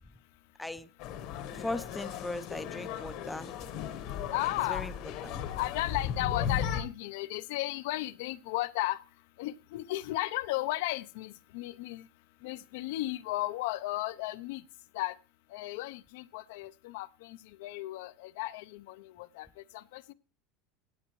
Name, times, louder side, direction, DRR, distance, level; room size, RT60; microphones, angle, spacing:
voice 1, 0.6-0.9 1.5-3.5 4.7-4.9 5.2-5.4, left 2 dB, 5° left, 12 dB, 0.4 m, -38 dB
sound 1, 1.0-6.8, left 8 dB, 50° left, 1.0 m, -36 dB
voice 2, 4.3-4.9 5.6-9.0 9.4-12.1 12.4-14.6 14.9-15.1 15.5-19.5 19.7-20.1, left 17 dB, 70° left, 14 dB, 0.5 m, -35 dB
17.0 x 8.2 x 3.1 m, 0.35 s
supercardioid pair, 165°, 0 cm